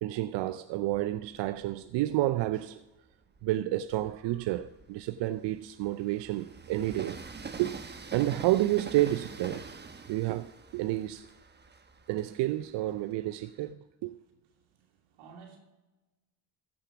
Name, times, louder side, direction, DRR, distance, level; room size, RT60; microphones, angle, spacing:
voice 1, 0.0-2.8 3.4-7.2 7.6-7.8 8.1-9.7 10.1-11.3 12.1-14.1, right 15 dB, 60° right, 0.6 m, -30 dB
Train, 0.8-2.5 3.1-13.7, right 4 dB, 20° right, 1.1 m, -46 dB
voice 2, 14.1-15.6, right 5 dB, 80° right, 3.0 m, -55 dB
15.5 x 6.6 x 5.9 m
hypercardioid pair, 60°, 49 cm